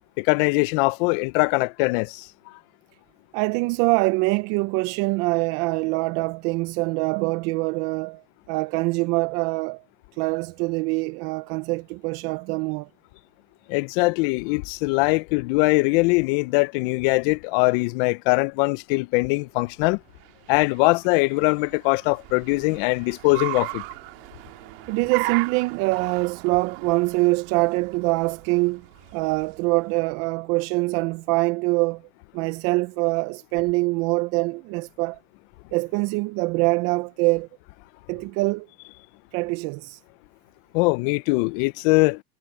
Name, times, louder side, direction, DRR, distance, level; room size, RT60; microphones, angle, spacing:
voice 1, 0.2-2.3 13.7-20.0 20.5-23.8 40.7-42.2, left 26 dB, 60° left, 0.7 m, -22 dB
voice 2, 3.3-9.8 10.2-12.9 24.9-28.8 29.1-32.0 32.3-35.2 35.7-37.5 38.1-38.7 39.3-40.0, right 25 dB, 55° right, 0.6 m, -24 dB
Car, 19.8-30.0, right 24 dB, 70° right, 2.1 m, -37 dB
supercardioid pair, 130°, 30 cm